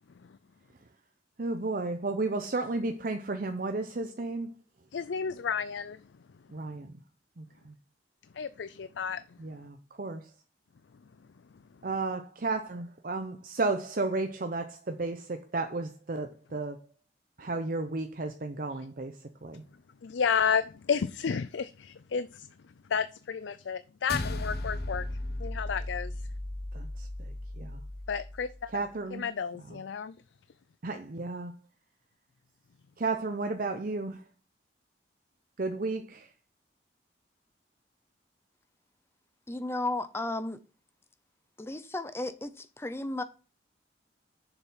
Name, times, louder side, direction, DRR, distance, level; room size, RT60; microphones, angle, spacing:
voice 1, 1.4-4.6 6.5-7.0 7.4-7.7 9.4-10.3 11.8-16.8 17.4-19.6 26.7-27.8 28.7-29.2 29.7-29.8 30.8-31.5 33.0-34.3 35.6-36.3, right 3 dB, 50° right, 0.7 m, -33 dB
voice 2, 4.9-6.0 8.4-9.2 20.0-22.5 22.9-25.0 25.4-26.1 28.1-28.7 29.1-30.1, left 6 dB, 90° left, 0.5 m, -31 dB
sound 1, 24.1-28.7, left 1 dB, 60° left, 1.0 m, -36 dB
voice 3, 39.5-40.6 41.6-43.2, left 2 dB, 15° left, 0.6 m, -34 dB
7.2 x 6.9 x 5.6 m
head